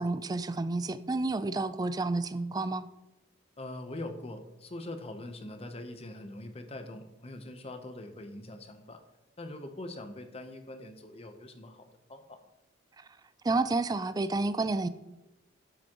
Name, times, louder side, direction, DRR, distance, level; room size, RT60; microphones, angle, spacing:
voice 1, 0.0-2.9 13.4-14.9, right 3 dB, 20° right, 13 dB, 0.3 m, -30 dB
voice 2, 3.6-9.0 9.4-12.4, left 1 dB, 30° left, 7 dB, 0.8 m, -43 dB
10.5 x 7.1 x 3.0 m, 0.96 s
head